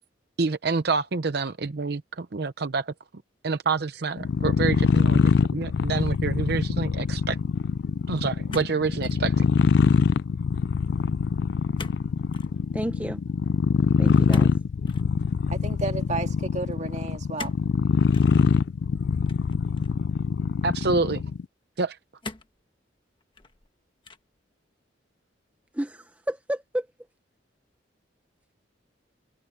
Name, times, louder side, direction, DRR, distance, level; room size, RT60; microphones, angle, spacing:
voice 1, 0.4-2.9 3.4-7.4 8.1-9.4 20.6-21.2 21.8-22.0, right 4 dB, 60° right, 0.7 m, -27 dB
sound 1, 4.2-21.5, left 5 dB, 60° left, 0.3 m, -23 dB
sound 2, 8.5-9.3 9.6-10.0 11.8-12.0 12.3-12.5 14.3-15.1 17.4-17.7 18.1-18.3 19.3-20.0 20.7-20.8 22.2-22.6 23.2-23.7 24.0-24.4, left 3 dB, 25° left, 1.2 m, -40 dB
voice 2, 12.7-13.2 14.0-14.5 25.8-26.0 26.3-26.8, right 1 dB, 10° right, 0.7 m, -30 dB
voice 3, 15.5-17.5, right 3 dB, 40° right, 1.9 m, -32 dB
head